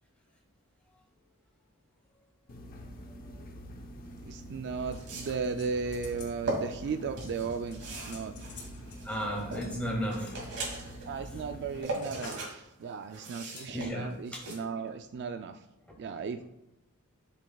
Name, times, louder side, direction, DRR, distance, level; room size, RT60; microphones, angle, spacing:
sound 1, 2.5-11.9, equal, 40° left, 0.8 m, -46 dB
sound 2, 4.2-4.3 4.9-5.5 6.1-6.6 7.2-9.7 10.1-11.0 11.5-12.5 12.8-14.5, right 2 dB, 80° right, 2.3 m, -39 dB
voice 1, 4.3-8.4 11.0-15.6 16.0-16.4, right 5 dB, 50° right, 8 dB, 0.4 m, -36 dB
sound 3, 4.9-6.4 6.7-7.0 7.3-9.0 9.6-10.5 11.2-12.5 12.8-13.0 13.6-13.7 14.3-14.6 14.9-15.0, left 4 dB, 75° left, 2.6 m, -51 dB
voice 2, 9.0-10.3 13.7-14.1, equal, 5° left, -2 dB, 1.9 m, -33 dB
8.3 x 7.0 x 2.3 m, 0.91 s
head